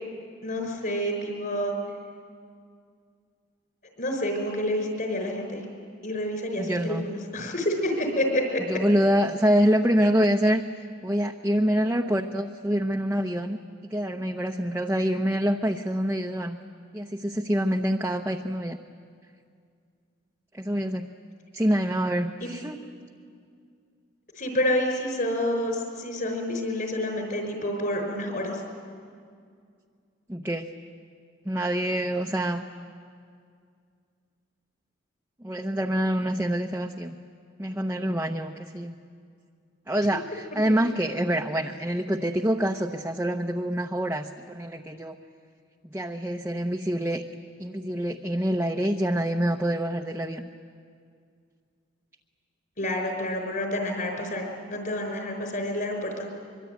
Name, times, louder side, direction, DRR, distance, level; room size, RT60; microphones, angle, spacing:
voice 1, 0.4-1.7 4.0-5.6 6.0-8.6 22.4-22.5 24.4-28.6 52.8-56.3, left 1 dB, 50° left, 4 dB, 5.5 m, -28 dB
voice 2, 6.6-7.1 8.7-10.6 11.0-13.6 13.9-16.6 16.9-18.8 20.6-21.1 21.5-22.8 30.3-30.7 31.5-32.6 35.4-37.2 37.6-38.9 39.9-45.2 45.9-47.2 47.6-50.5, equal, 10° right, 1 dB, 0.9 m, -26 dB
24.5 x 23.5 x 9.4 m, 2.2 s
head